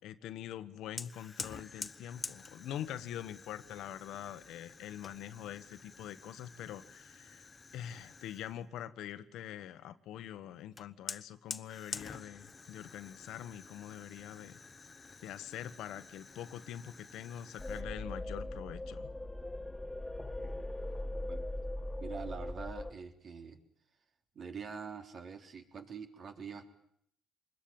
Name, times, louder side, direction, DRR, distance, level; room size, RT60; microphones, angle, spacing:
voice 1, 0.0-7.5 7.7-14.6 15.2-19.1, left 11 dB, 85° left, 12 dB, 1.3 m, -44 dB
Fire, 1.0-8.6 10.8-17.8, left 4 dB, 30° left, 1.0 m, -48 dB
sound 1, 17.6-22.9, left 1 dB, 10° left, 2.2 m, -40 dB
voice 2, 22.0-23.6 24.3-26.7, right 6 dB, 55° right, 5 dB, 3.6 m, -45 dB
25.5 x 21.0 x 8.8 m, 0.68 s
cardioid pair, 90°, 0 cm